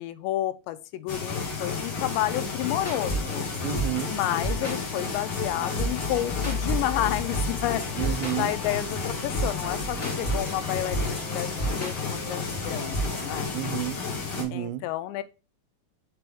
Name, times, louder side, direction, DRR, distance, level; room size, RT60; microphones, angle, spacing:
voice 1, 0.0-3.5 4.1-7.9 8.3-13.5 14.5-15.2, left 14 dB, 90° left, 2.8 m, -30 dB
sound 1, 1.1-14.4, left 5 dB, 50° left, 2.1 m, -32 dB
sound 2, 2.8-13.4, right 2 dB, 20° left, 2.3 m, -33 dB
voice 2, 3.6-4.2 8.0-8.5 13.5-14.0 14.4-14.9, right 16 dB, 90° right, 2.8 m, -31 dB
sound 3, 6.0-8.8, left 4 dB, 65° left, 2.8 m, -36 dB
6.1 x 4.5 x 3.4 m
omnidirectional pair, 5.0 m